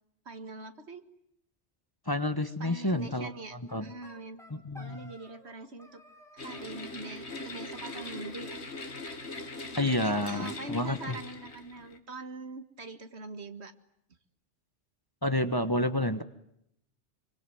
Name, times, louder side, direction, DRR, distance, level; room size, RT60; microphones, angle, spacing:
voice 1, 0.3-1.1 2.6-4.4 4.8-6.0 6.3-8.6 10.0-13.7, right 2 dB, 70° right, 9 dB, 2.1 m, -43 dB
voice 2, 2.1-3.9 4.5-5.1 9.7-11.1 15.2-16.2, left 1 dB, 20° left, 9 dB, 1.2 m, -30 dB
sound 1, 3.7-5.5 5.8-6.8 7.7-8.5 8.8-9.6 9.9-10.0 10.2-10.3 10.6-11.6, equal, ahead, 5.1 m, -56 dB
sound 2, 6.4-12.0, left 2 dB, 70° left, 2.3 m, -41 dB
26.0 x 24.5 x 9.3 m, 0.75 s
omnidirectional pair, 1.2 m